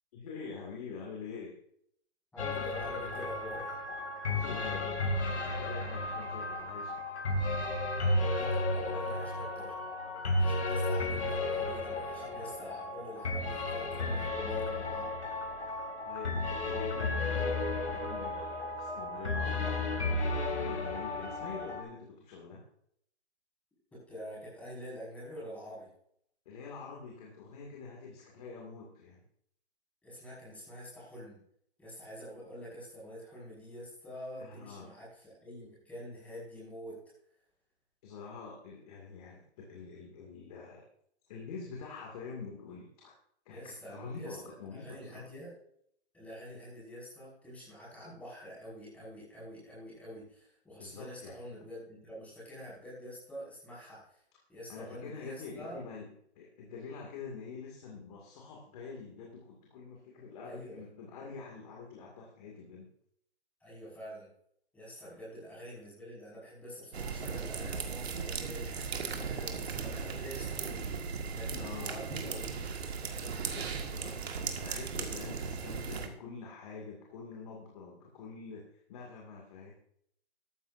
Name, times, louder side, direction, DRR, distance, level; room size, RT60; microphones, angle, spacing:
voice 1, 0.1-1.5 4.3-7.0 14.6-14.9 15.6-22.6 26.5-29.2 34.4-34.9 38.0-40.8 41.3-43.1 43.5-45.3 50.8-51.4 54.7-56.1 56.4-62.9 69.4-69.5 71.5-72.6 73.5-74.1 74.6-79.7, left 4 dB, 35° left, -1 dB, 2.4 m, -46 dB
voice 2, 2.3-3.7 8.3-9.7 10.3-15.1 23.9-25.9 30.0-31.4 31.8-37.0 43.5-45.5 46.1-54.2 54.5-55.8 60.4-60.8 63.6-64.3 64.7-72.6 73.2-73.4, equal, 5° left, -7 dB, 5.5 m, -46 dB
sound 1, 2.4-21.8, left 2 dB, 80° left, 2.9 m, -33 dB
sound 2, 66.9-76.1, right 5 dB, 65° right, 1.9 m, -37 dB
14.0 x 12.5 x 2.7 m, 0.69 s
hypercardioid pair, 155°, 33 cm